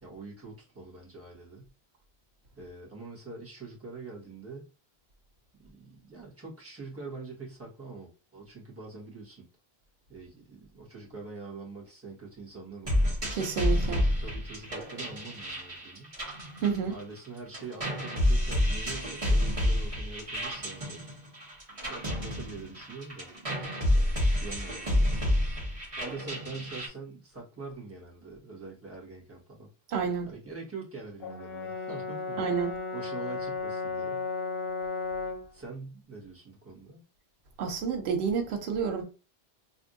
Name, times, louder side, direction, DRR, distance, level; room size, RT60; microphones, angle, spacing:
voice 1, 0.0-1.7 2.6-4.7 5.6-9.4 10.1-13.2 13.9-16.1 16.9-21.0 21.8-23.3 23.9-25.4 26.0-29.7 30.3-32.5 32.9-34.3 35.5-37.0, right 3 dB, 15° right, 1.2 m, -44 dB
sound 1, 12.9-17.3 17.5-26.9, left 1 dB, 35° right, 1.4 m, -29 dB
voice 2, 13.3-14.0 16.6-17.0 29.9-30.3 32.4-32.7 37.6-39.0, right 6 dB, 85° right, 0.9 m, -29 dB
Brass instrument, 31.2-35.5, left 4 dB, 70° left, 0.8 m, -34 dB
3.4 x 2.6 x 2.5 m
omnidirectional pair, 1.0 m